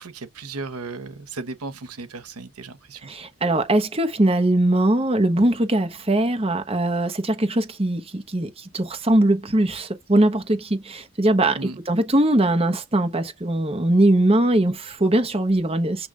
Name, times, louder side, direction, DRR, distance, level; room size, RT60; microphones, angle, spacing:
voice 1, 0.0-3.1 11.6-11.8, right 3 dB, 90° right, 1.0 m, -35 dB
voice 2, 3.0-11.6 11.9-16.1, right 1 dB, 25° right, 1.1 m, -21 dB
7.8 x 3.4 x 3.7 m
head